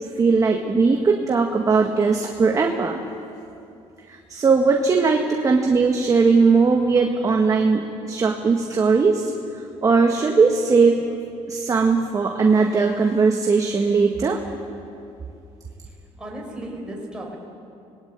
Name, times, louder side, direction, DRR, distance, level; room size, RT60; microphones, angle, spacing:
voice 1, 0.0-3.0 4.1-9.3 9.8-11.0 11.5-14.4, right 4 dB, 30° right, 2 dB, 1.7 m, -19 dB
voice 2, 16.2-17.4, right 1 dB, 5° right, -2 dB, 5.3 m, -34 dB
25.5 x 20.0 x 9.0 m, 2.6 s
cardioid pair, 120°, 12 cm